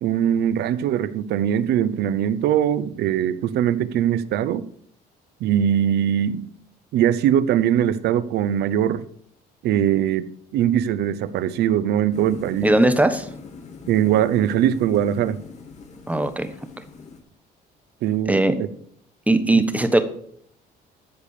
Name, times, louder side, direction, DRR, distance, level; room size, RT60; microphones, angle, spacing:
voice 1, 0.0-4.7 5.4-6.5 6.9-9.0 9.6-12.7 13.9-15.4 18.0-18.7 19.5-19.6, right 10 dB, 75° right, 0.8 m, -21 dB
sound 1, 12.1-17.2, left 4 dB, 45° left, 2.3 m, -41 dB
voice 2, 12.6-13.3 16.1-16.5 18.3-18.6 19.3-20.0, right 2 dB, 10° right, 1.2 m, -19 dB
14.0 x 5.0 x 6.7 m
cardioid pair, 110°, 17 cm